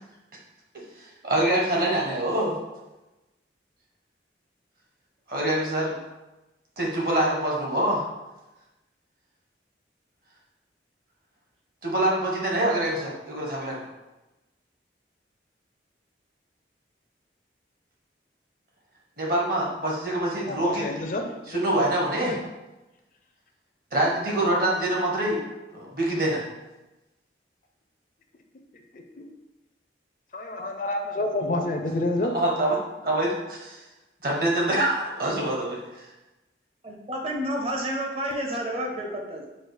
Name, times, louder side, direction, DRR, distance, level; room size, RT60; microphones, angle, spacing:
voice 1, 0.7-2.6 5.3-6.0 6.8-8.0 11.8-13.9 19.2-20.8 21.5-22.4 23.9-25.4 25.7-26.4 32.3-32.8 33.0-33.8 34.2-36.1, right 1 dB, 55° right, -2 dB, 1.1 m, -25 dB
voice 2, 20.3-21.9 22.3-22.4 28.7-29.2 30.3-32.4, left 2 dB, 45° left, 4 dB, 0.4 m, -29 dB
voice 3, 36.8-39.5, equal, 35° right, 1 dB, 0.7 m, -30 dB
4.8 x 2.4 x 4.7 m, 1.0 s
head